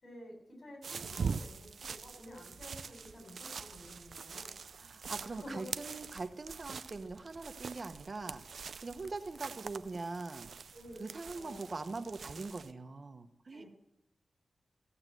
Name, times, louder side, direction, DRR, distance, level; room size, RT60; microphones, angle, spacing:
voice 1, 0.0-4.6 5.3-5.7 10.7-11.0 11.4-11.7 13.5-13.7, left 1 dB, 65° left, 1 dB, 7.6 m, -51 dB
sound 1, 0.8-12.7, right 5 dB, 85° right, 0.5 m, -44 dB
voice 2, 4.8-8.4 8.8-10.5 11.0-13.6, right 3 dB, 50° right, 9 dB, 1.1 m, -42 dB
15.5 x 8.8 x 7.8 m, 0.80 s
wide cardioid pair, 85°, 0 cm